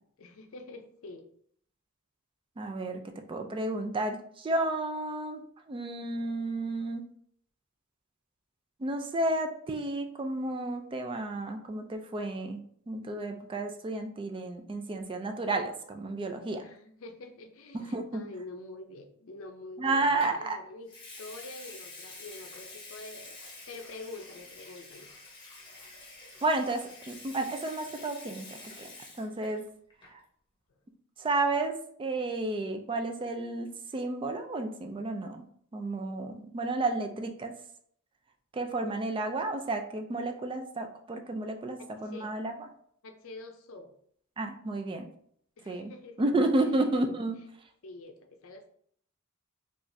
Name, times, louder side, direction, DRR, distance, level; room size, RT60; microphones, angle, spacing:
voice 1, 0.2-1.3 16.6-20.9 21.2-25.1 41.8-42.3 43.0-43.9 45.6-46.2 46.6-46.8 47.4-47.5 47.8-48.7, left 2 dB, 65° left, 6 dB, 0.5 m, -46 dB
voice 2, 2.6-3.0 3.3-5.4 5.7-7.1 8.8-12.6 12.9-16.6 17.7-18.2 19.8-20.6 26.4-28.9 29.2-29.6 30.1-30.2 31.2-35.4 35.7-37.5 38.5-42.5 44.4-45.0 45.7-45.9 46.2-47.4, right 2 dB, 25° right, 5 dB, 0.3 m, -31 dB
Water tap faucet / Sink (filling or washing) / Liquid, 20.2-20.4 20.9-29.6 29.9-30.2, left 2 dB, 25° left, 1.0 m, -48 dB
4.9 x 2.5 x 2.6 m, 0.64 s
head